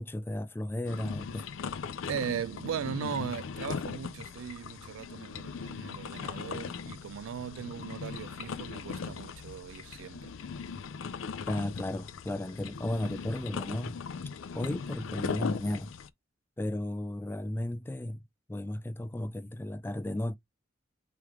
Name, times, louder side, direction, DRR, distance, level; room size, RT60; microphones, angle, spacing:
voice 1, 0.0-1.5 11.5-14.0 14.5-15.9 16.6-18.2 18.5-20.3, left 1 dB, 10° left, 0.3 m, -34 dB
sound 1, 0.9-16.1, left 5 dB, 80° left, 0.4 m, -39 dB
voice 2, 2.1-10.3, right 8 dB, 80° right, 0.3 m, -38 dB
4.6 x 3.3 x 3.5 m
head